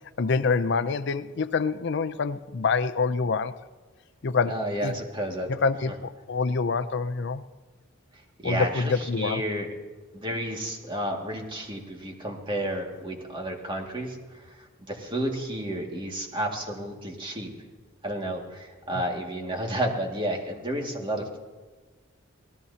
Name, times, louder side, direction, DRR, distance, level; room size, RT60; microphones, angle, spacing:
voice 1, 0.2-3.6 4.2-4.9 5.5-7.4 8.4-9.4, left 4 dB, 60° left, 12 dB, 0.5 m, -26 dB
voice 2, 4.5-5.5 8.4-9.7 10.1-17.5 18.0-21.4, right 1 dB, 25° right, 1 dB, 2.1 m, -31 dB
25.5 x 18.0 x 2.8 m, 1.4 s
head